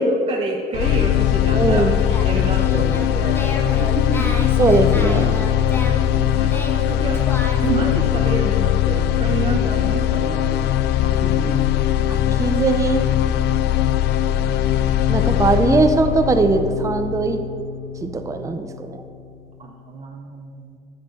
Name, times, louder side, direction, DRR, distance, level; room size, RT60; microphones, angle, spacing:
voice 1, 0.0-4.3 6.3-10.5 11.0-11.6 19.6-20.8, right 4 dB, 35° right, -1 dB, 0.9 m, -29 dB
sound 1, 0.7-18.8, left 11 dB, 80° left, 0.4 m, -20 dB
Singing, 1.5-7.8, left 1 dB, 15° left, 1.1 m, -33 dB
voice 2, 1.5-1.9 4.6-5.4 12.4-13.0 15.1-17.4 18.0-19.0, right 3 dB, 20° right, 7 dB, 0.6 m, -19 dB
10.5 x 6.6 x 5.3 m, 2.3 s
cardioid pair, 110°, 17 cm